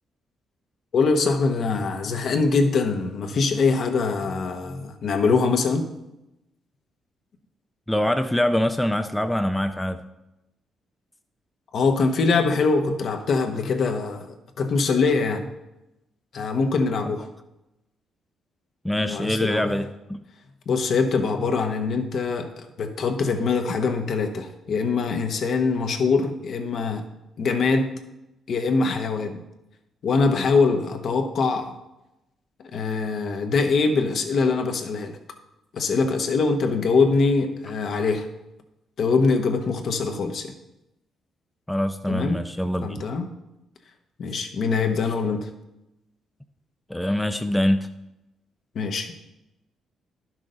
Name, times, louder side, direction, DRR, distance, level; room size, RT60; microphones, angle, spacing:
voice 1, 0.9-5.9 11.7-15.5 16.3-17.3 19.1-19.7 20.7-27.0 27.4-27.9 28.5-29.4 30.0-31.7 32.7-35.2 35.7-38.3 39.0-40.5 42.1-42.4 42.8-43.2 44.2-45.5 48.7-49.1, left 4 dB, 60° left, 5 dB, 1.1 m, -23 dB
voice 2, 7.9-10.0 18.8-19.8 20.1-20.2 41.7-43.0 46.9-47.9, left 1 dB, 5° left, 7 dB, 0.5 m, -24 dB
11.0 x 6.1 x 3.9 m, 0.93 s
cardioid pair, 90°, 0 cm